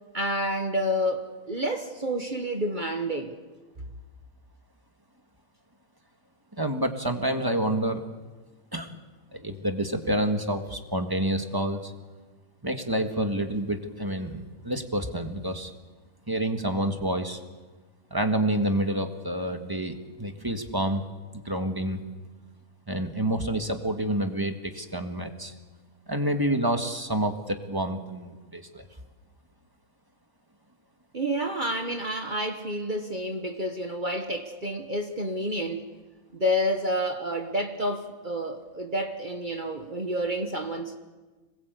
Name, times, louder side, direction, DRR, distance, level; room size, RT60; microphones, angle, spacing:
voice 1, 0.1-3.3 31.1-35.9 36.3-41.0, equal, 35° right, 1.4 m, -29 dB
voice 2, 6.6-8.0 8.7-9.0 9.3-11.9 12.6-15.7 16.3-17.4 18.1-21.0 21.5-22.0 22.9-25.5 26.1-28.8, right 1 dB, 15° right, 1.7 m, -28 dB
26.5 x 20.5 x 8.2 m
omnidirectional pair, 1.5 m